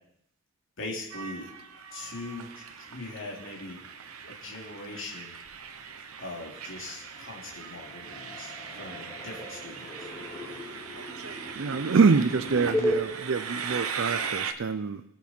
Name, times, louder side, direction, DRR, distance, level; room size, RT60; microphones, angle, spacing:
voice 1, 0.8-1.5 1.9-3.8 4.3-5.4 6.2-10.1, left 2 dB, 60° left, -2 dB, 3.0 m, -41 dB
Train, 1.1-14.5, right 6 dB, 85° right, 1.1 m, -39 dB
sound 1, 7.0-7.6 7.8-13.0, left 1 dB, 15° left, 2.3 m, -35 dB
voice 2, 11.6-15.0, right 5 dB, 60° right, 11 dB, 0.5 m, -25 dB
22.0 x 8.3 x 4.4 m, 0.77 s
head